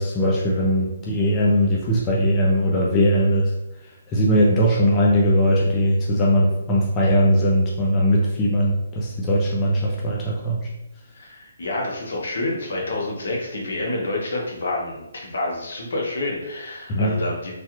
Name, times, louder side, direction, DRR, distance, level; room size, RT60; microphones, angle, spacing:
voice 1, 0.0-3.5 4.1-10.6 16.9-17.2, equal, 15° left, -4 dB, 0.4 m, -20 dB
voice 2, 11.1-17.5, left 2 dB, 65° left, -2 dB, 0.9 m, -28 dB
3.3 x 2.3 x 2.9 m, 0.94 s
hypercardioid pair, 160°, 0 cm